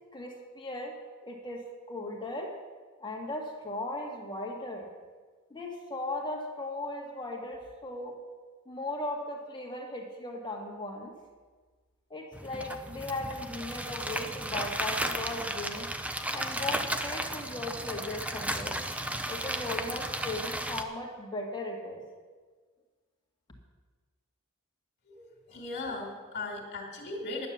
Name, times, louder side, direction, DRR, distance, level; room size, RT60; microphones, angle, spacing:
voice 1, 0.1-1.0 1.2-2.5 3.0-4.9 5.5-8.2 8.7-11.1 12.1-15.9 16.3-18.8 19.3-22.0, left 2 dB, 20° left, 0 dB, 1.9 m, -37 dB
sound 1, 12.3-20.8, right 1 dB, 5° right, 0.6 m, -34 dB
voice 2, 25.0-27.5, left 2 dB, 50° left, 0 dB, 2.5 m, -38 dB
11.0 x 9.6 x 7.0 m, 1.4 s
head